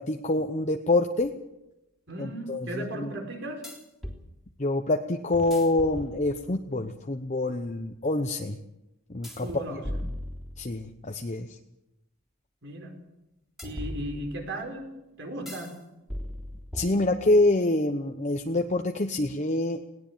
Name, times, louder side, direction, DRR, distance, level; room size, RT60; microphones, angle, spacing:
voice 1, 0.0-1.3 2.2-3.1 4.6-8.6 9.1-9.8 10.6-11.6 16.7-19.8, left 2 dB, 30° left, 5 dB, 0.9 m, -26 dB
sound 1, 1.2-1.3 3.6-4.2 5.3-6.6 9.2-10.9 13.6-14.6 15.5-15.8 16.1-17.4, equal, ahead, 3.3 m, -38 dB
voice 2, 2.1-3.7 9.4-9.8 12.6-13.0 13.6-14.9 15.2-15.8, right 1 dB, 55° right, 3 dB, 4.8 m, -36 dB
20.5 x 18.0 x 7.4 m, 0.92 s
head